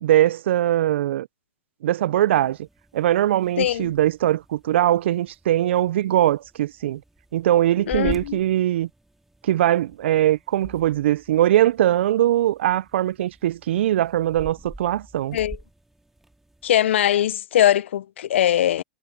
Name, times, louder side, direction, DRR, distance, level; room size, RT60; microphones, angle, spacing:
voice 1, 0.0-1.3 1.8-2.6 2.9-7.0 7.3-8.9 9.4-15.4, right 13 dB, 70° right, 0.4 m, -21 dB
sound 1, 2.1-16.9, right 1 dB, 5° right, 2.1 m, -45 dB
voice 2, 3.6-3.9 7.9-8.4 15.3-15.6 16.6-18.8, left 11 dB, 75° left, 0.5 m, -21 dB
hypercardioid pair, 120°, 6 cm